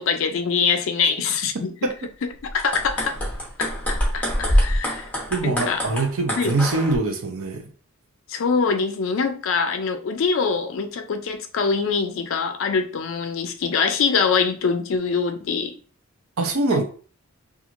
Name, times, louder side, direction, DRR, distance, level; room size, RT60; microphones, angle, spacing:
voice 1, 0.0-1.7 2.4-3.2 3.6-5.0 5.4-5.8 6.4-6.6 8.3-15.8 16.7-16.8, left 5 dB, 60° left, 0.4 m, -24 dB
sound 1, 2.5-7.0, equal, 5° left, 0.8 m, -25 dB
voice 2, 5.3-7.6 16.4-16.8, right 3 dB, 70° right, 0.6 m, -23 dB
3.0 x 2.4 x 2.5 m
head